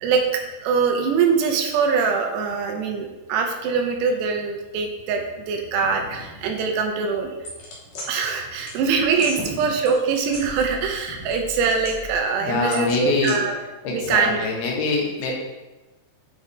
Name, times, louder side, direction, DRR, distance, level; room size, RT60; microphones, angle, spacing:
voice 1, 0.0-7.3 8.1-13.6 13.9-14.4, right 5 dB, 80° right, 3 dB, 2.8 m, -23 dB
sound 1, 7.4-8.1 8.7-8.8 9.1-9.4 9.9-11.0 11.2-12.2 12.7-13.3, left 2 dB, 55° left, 2.1 m, -37 dB
voice 2, 12.4-13.5 13.8-15.3, left 3 dB, 75° left, -2 dB, 3.2 m, -24 dB
8.5 x 4.7 x 3.3 m, 1.1 s
omnidirectional pair, 5.0 m